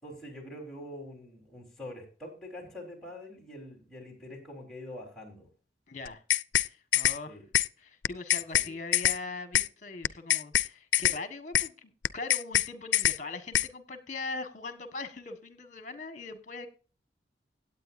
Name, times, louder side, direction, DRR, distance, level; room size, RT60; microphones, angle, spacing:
voice 1, 0.0-5.5 7.3-7.4 8.6-8.7, left 1 dB, 5° left, 4.0 m, -45 dB
voice 2, 5.9-6.2 6.6-7.4 7.8-16.7, left 3 dB, 45° left, 1.5 m, -41 dB
sound 1, 6.1-6.7 6.9-7.2 7.5-7.7 8.0-8.7 8.9-9.2 9.5-9.7 10.0-10.7 10.9-11.2 11.5-11.7 12.0-12.7 12.9-13.2 13.5-13.7, left 13 dB, 85° left, 0.4 m, -24 dB
17.0 x 8.9 x 2.6 m
head